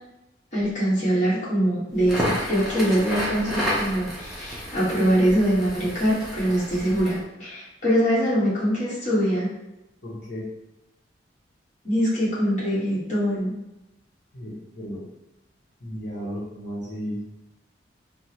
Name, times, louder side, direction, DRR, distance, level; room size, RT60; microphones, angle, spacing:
voice 1, 0.5-9.5 11.8-13.5, equal, 40° left, -9 dB, 1.3 m, -23 dB
Crackle, 2.0-7.2, equal, ahead, 0.6 m, -31 dB
voice 2, 10.0-10.4 14.3-15.0 15.8-17.2, equal, 60° left, -9 dB, 0.9 m, -34 dB
3.5 x 2.1 x 2.9 m, 0.92 s
head